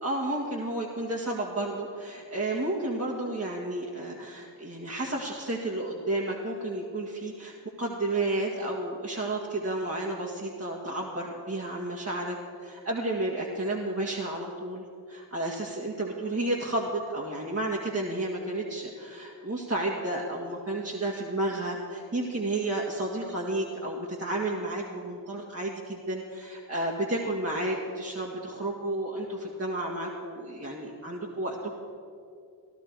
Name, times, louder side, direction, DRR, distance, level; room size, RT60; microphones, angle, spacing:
voice 1, 0.0-31.8, right 2 dB, 30° right, -4 dB, 2.0 m, -32 dB
15.5 x 12.5 x 4.7 m, 2.4 s
cardioid pair, 55°, 46 cm